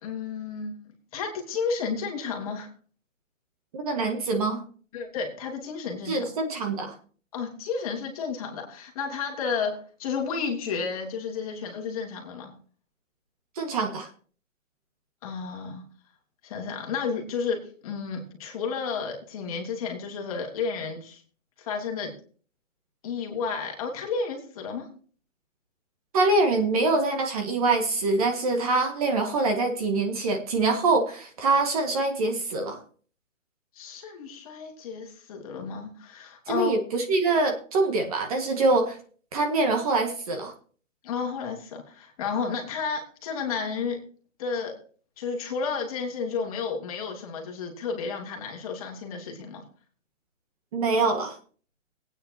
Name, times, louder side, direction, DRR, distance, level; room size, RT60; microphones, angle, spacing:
voice 1, 0.0-2.7 4.9-6.3 7.3-12.5 15.2-15.8 16.4-21.2 21.6-22.1 23.0-24.9 33.7-36.8 41.0-44.0 44.4-44.8 45.2-49.6, left 5 dB, 30° left, 1 dB, 2.5 m, -32 dB
voice 2, 3.7-4.6 6.1-6.9 13.5-14.1 26.1-32.8 36.5-39.0 39.3-40.5 50.7-51.4, right 3 dB, 30° right, 4 dB, 1.7 m, -24 dB
19.0 x 9.3 x 2.8 m, 0.41 s
hypercardioid pair, 170°, 38 cm